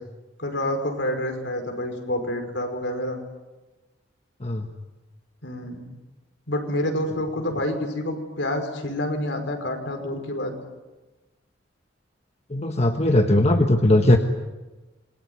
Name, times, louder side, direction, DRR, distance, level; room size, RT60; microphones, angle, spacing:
voice 1, 0.4-3.2 5.4-5.9 6.5-10.5, left 1 dB, 70° left, 5 dB, 5.4 m, -28 dB
voice 2, 12.5-14.2, left 1 dB, 35° left, 5 dB, 1.5 m, -19 dB
27.0 x 23.0 x 9.6 m, 1.1 s
head